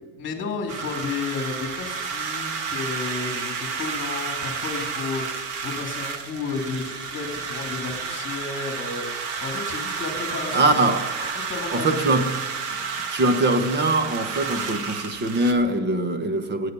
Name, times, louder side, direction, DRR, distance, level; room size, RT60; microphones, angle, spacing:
voice 1, 0.2-10.8 11.3-12.0, left 4 dB, 25° left, 3.1 m, -32 dB
sound 1, 0.7-15.5, right 5 dB, 60° right, 1.8 m, -31 dB
voice 2, 10.5-11.4 11.7-12.4 13.1-16.7, right 2 dB, 20° right, 1.2 m, -22 dB
25.5 x 10.0 x 5.5 m
cardioid pair, 170°, 49 cm